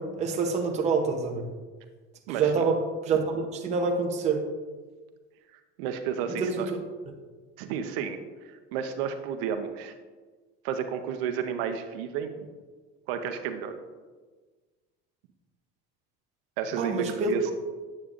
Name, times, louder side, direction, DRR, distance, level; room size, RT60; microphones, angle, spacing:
voice 1, 0.0-1.5 2.4-4.5 6.3-6.8 16.8-17.5, right 4 dB, 25° right, 1 dB, 0.7 m, -27 dB
voice 2, 5.8-6.7 7.6-9.9 10.6-12.3 13.1-13.8 16.6-17.5, right 7 dB, 75° right, 7 dB, 0.8 m, -32 dB
8.4 x 8.3 x 2.5 m, 1.4 s
cardioid pair, 165°, 29 cm